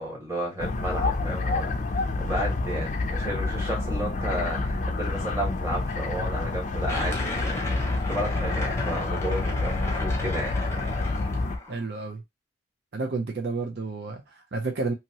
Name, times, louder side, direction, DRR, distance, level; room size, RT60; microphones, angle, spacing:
voice 1, 0.0-10.5, equal, 15° right, 1.4 m, -33 dB
sound 1, 0.6-11.6, left 3 dB, 40° left, 0.4 m, -28 dB
sound 2, 6.9-11.8, left 2 dB, 15° left, 0.8 m, -35 dB
voice 2, 11.7-12.2 12.9-14.9, right 3 dB, 60° right, 0.5 m, -31 dB
2.8 x 2.8 x 2.7 m
head